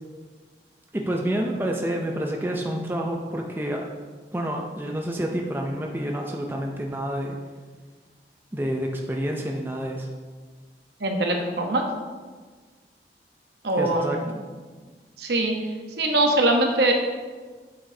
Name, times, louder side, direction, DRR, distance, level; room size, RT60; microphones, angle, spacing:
voice 1, 0.9-3.9 4.3-7.4 8.5-10.1 13.8-14.2, right 1 dB, 10° right, 1 dB, 0.5 m, -28 dB
voice 2, 11.0-11.8 13.6-14.3 15.2-15.5 16.0-16.9, right 1 dB, 70° right, 2 dB, 0.9 m, -22 dB
7.9 x 6.1 x 2.7 m, 1.5 s
head